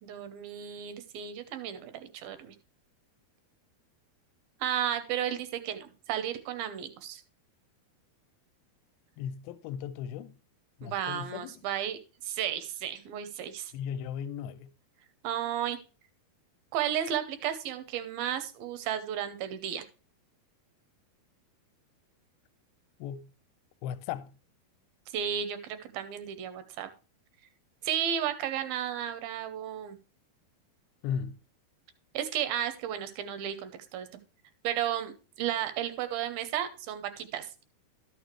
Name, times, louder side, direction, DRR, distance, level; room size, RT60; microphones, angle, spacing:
voice 1, 0.0-2.6 4.6-7.2 10.8-13.7 15.2-15.8 16.7-19.8 25.1-26.9 27.8-30.0 32.1-34.1 34.6-37.5, right 10 dB, 80° right, 2.4 m, -33 dB
voice 2, 9.2-10.3 10.8-11.5 13.7-14.7 23.0-23.3 23.8-24.3 31.0-31.4, left 8 dB, 80° left, 2.4 m, -36 dB
12.0 x 6.6 x 3.2 m
omnidirectional pair, 4.5 m